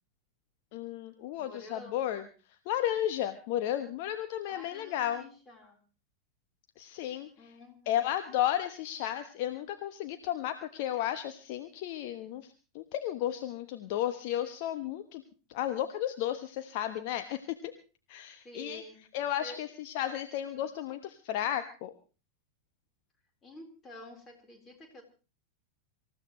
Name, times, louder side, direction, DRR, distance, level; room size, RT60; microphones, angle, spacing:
voice 1, 0.7-2.3 2.7-5.3 6.8-7.5 7.9-15.2 15.5-17.7 18.1-18.8 19.1-21.9, left 12 dB, 45° left, 9 dB, 1.1 m, -33 dB
voice 2, 1.4-2.3 4.5-5.8 7.4-8.0 18.4-19.0 19.4-19.6 20.0-20.2 23.4-25.0, left 1 dB, 20° left, 4 dB, 4.1 m, -49 dB
26.0 x 15.0 x 3.1 m, 0.34 s
figure-of-eight pair, 90°, 0 cm